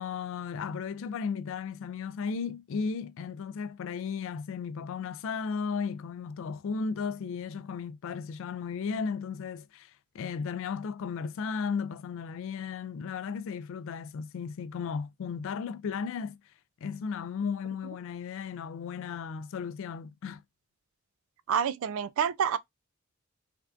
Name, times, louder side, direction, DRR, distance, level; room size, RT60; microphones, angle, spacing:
voice 1, 0.0-16.4 16.8-20.4, left 5 dB, 65° left, 0.3 m, -35 dB
voice 2, 21.5-22.6, right 7 dB, 70° right, 0.4 m, -28 dB
3.4 x 2.3 x 2.4 m
head